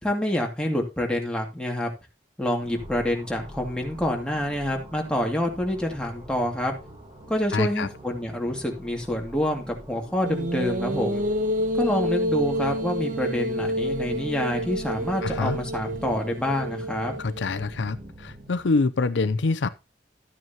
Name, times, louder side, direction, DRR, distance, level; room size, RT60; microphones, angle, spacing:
voice 1, 0.0-1.9 2.4-6.8 7.3-11.2 11.7-17.2, left 1 dB, 5° left, 2.3 m, -27 dB
sound 1, 2.6-18.8, right 1 dB, 25° right, 7.4 m, -44 dB
voice 2, 7.5-7.9 15.2-15.6 17.2-19.7, left 3 dB, 85° left, 0.6 m, -25 dB
sound 2, 10.3-17.6, equal, 45° right, 0.8 m, -28 dB
12.5 x 9.3 x 2.9 m
head